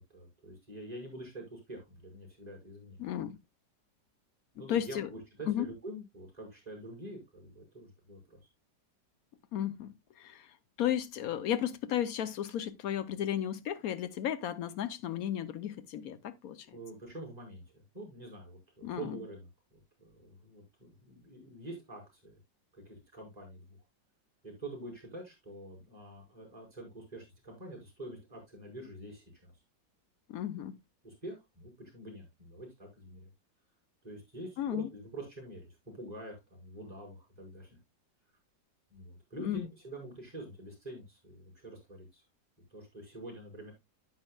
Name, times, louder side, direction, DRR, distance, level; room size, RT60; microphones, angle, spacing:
voice 1, 0.1-3.0 4.6-8.4 16.7-22.4 22.7-23.8 24.4-29.5 31.0-33.3 34.0-35.6 35.9-37.8 38.9-42.2 42.7-43.7, right 1 dB, 20° right, 5.3 m, -46 dB
voice 2, 3.0-3.4 4.7-5.1 5.5-5.7 9.5-10.5 10.8-16.8 18.8-19.2 30.3-30.8 34.6-34.9 39.4-39.6, left 10 dB, 60° left, 1.1 m, -34 dB
10.5 x 8.5 x 2.3 m
omnidirectional pair, 2.0 m